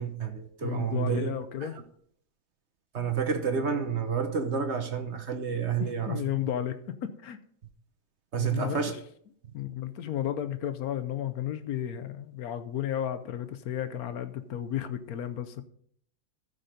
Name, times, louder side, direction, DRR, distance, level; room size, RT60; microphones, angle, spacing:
voice 1, 0.0-1.3 1.6-1.7 2.9-6.2 8.3-8.9, right 6 dB, 50° right, 0.9 m, -29 dB
voice 2, 0.6-1.7 5.8-7.4 8.4-9.0 9.5-15.6, left 10 dB, 65° left, 0.9 m, -33 dB
14.0 x 5.3 x 5.1 m
omnidirectional pair, 2.2 m